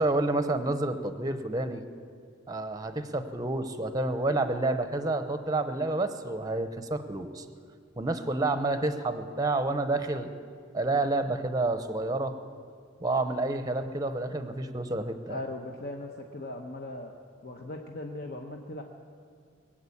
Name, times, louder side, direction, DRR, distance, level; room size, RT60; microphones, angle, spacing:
voice 1, 0.0-1.8 2.5-7.4 8.0-10.3 10.7-12.3 13.0-15.4, right 2 dB, 20° right, 9 dB, 0.7 m, -29 dB
voice 2, 15.3-17.1 17.4-18.8, left 2 dB, 55° left, 1 dB, 1.0 m, -39 dB
22.0 x 7.5 x 8.5 m, 2.2 s
head